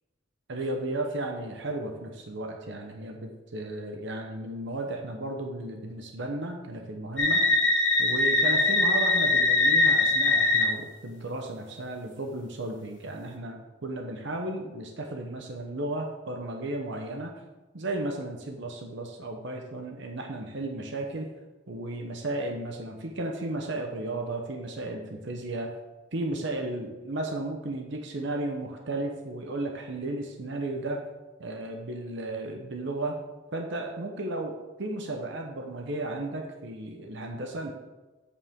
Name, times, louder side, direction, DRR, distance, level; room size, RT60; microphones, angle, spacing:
voice 1, 0.5-7.4 8.0-17.3 17.7-21.3 21.7-25.7 26.1-31.0 31.4-33.1 33.5-37.7, right 2 dB, 65° right, 3 dB, 0.9 m, -34 dB
sound 1, 7.2-10.7, left 2 dB, 65° left, 1.5 m, -22 dB
8.4 x 7.2 x 3.6 m, 1.2 s
head